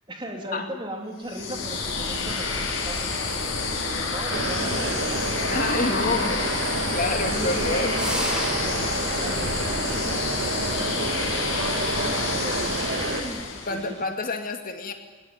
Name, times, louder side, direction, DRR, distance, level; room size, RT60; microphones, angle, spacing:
voice 1, 0.1-5.3 5.7-12.6 13.0-13.4 13.7-13.8, equal, 20° right, 2 dB, 3.0 m, -38 dB
sound 1, 1.2-13.9, left 3 dB, 65° left, 5.4 m, -28 dB
sound 2, 4.3-13.2, right 2 dB, 55° right, 2.2 m, -29 dB
voice 2, 5.5-6.4 6.9-7.9 13.7-14.9, left 3 dB, 40° left, 5 dB, 2.5 m, -28 dB
sound 3, 7.9-9.0, equal, 5° right, 3.2 m, -31 dB
23.0 x 19.5 x 9.6 m, 1.3 s
head